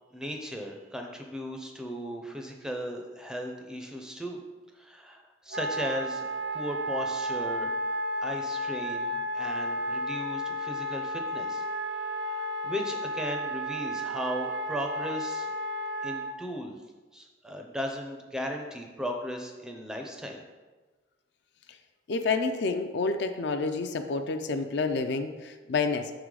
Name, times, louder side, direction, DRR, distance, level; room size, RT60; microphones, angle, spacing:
voice 1, 0.1-4.4 4.8-6.3 6.5-7.7 8.2-11.6 12.2-15.5 16.0-16.8 17.1-20.4, equal, 5° right, 2 dB, 0.4 m, -36 dB
Wind instrument woodwind instrument, 5.5-16.3, equal, 60° right, 0.5 m, -32 dB
voice 2, 22.1-26.1, left 4 dB, 60° left, 7 dB, 0.4 m, -29 dB
5.6 x 3.8 x 4.7 m, 1.3 s
head